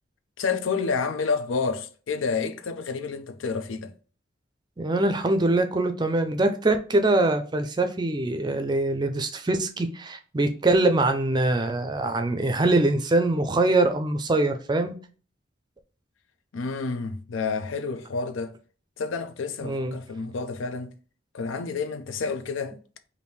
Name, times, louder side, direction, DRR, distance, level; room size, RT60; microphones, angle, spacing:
voice 1, 0.4-3.9 16.5-18.5 19.0-20.9 21.3-22.8, left 4 dB, 90° left, 0.5 m, -29 dB
voice 2, 4.8-14.9 19.6-20.0, right 2 dB, 20° right, 0.4 m, -23 dB
3.5 x 2.6 x 4.1 m
head